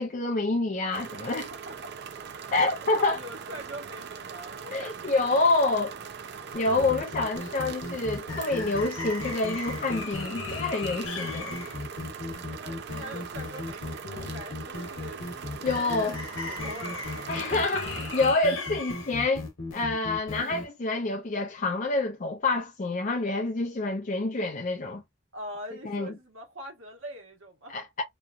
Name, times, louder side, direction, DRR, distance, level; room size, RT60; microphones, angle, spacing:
voice 1, 0.0-1.5 2.5-3.2 4.7-5.9 6.5-11.6 15.6-16.2 17.3-19.5 19.7-25.0 25.8-26.1 27.7-28.0, left 3 dB, 40° left, 0.5 m, -27 dB
sound 1, 0.9-18.3, right 6 dB, 55° right, 0.5 m, -41 dB
voice 2, 2.9-5.6 12.4-15.2 15.5-17.9 25.3-27.8, equal, 80° right, 1.3 m, -43 dB
sound 2, 6.5-20.6, left 3 dB, 70° left, 1.0 m, -36 dB
3.0 x 2.3 x 2.4 m
head